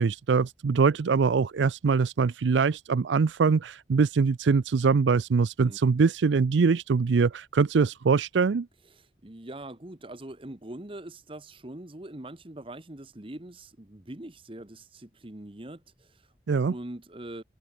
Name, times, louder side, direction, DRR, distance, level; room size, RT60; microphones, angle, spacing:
voice 1, 0.0-8.7 16.5-16.7, right 5 dB, 85° right, 0.5 m, -23 dB
voice 2, 8.9-16.3 16.7-17.4, right 1 dB, 30° right, 1.3 m, -42 dB
head